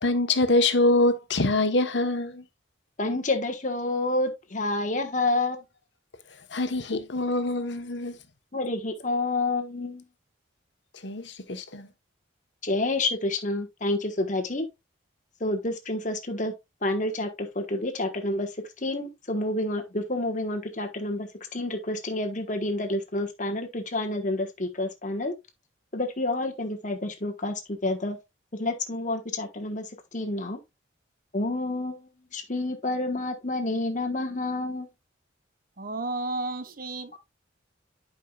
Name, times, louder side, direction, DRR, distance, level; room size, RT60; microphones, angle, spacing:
voice 1, 0.0-2.4 6.5-8.2 11.0-11.9, left 2 dB, 60° left, 1.1 m, -24 dB
voice 2, 3.0-5.6 8.5-10.0 12.6-14.7 15.4-16.5 16.8-18.5 18.8-25.3 25.9-28.2 28.6-30.6 31.3-34.9, left 2 dB, 40° left, 1.2 m, -29 dB
voice 3, 35.8-37.2, right 2 dB, 45° right, 0.9 m, -32 dB
11.0 x 5.5 x 2.3 m
head